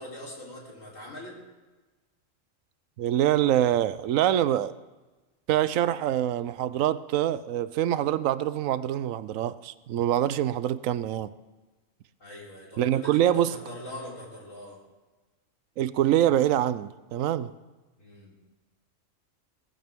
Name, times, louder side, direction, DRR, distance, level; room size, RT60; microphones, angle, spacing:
voice 1, 0.0-1.3 12.2-14.8 18.0-18.3, left 1 dB, 75° left, -4 dB, 4.1 m, -42 dB
voice 2, 3.0-4.7 5.5-11.3 12.8-13.5 15.8-17.5, right 11 dB, 85° right, 16 dB, 1.0 m, -25 dB
18.0 x 15.0 x 3.6 m, 1.2 s
omnidirectional pair, 1.3 m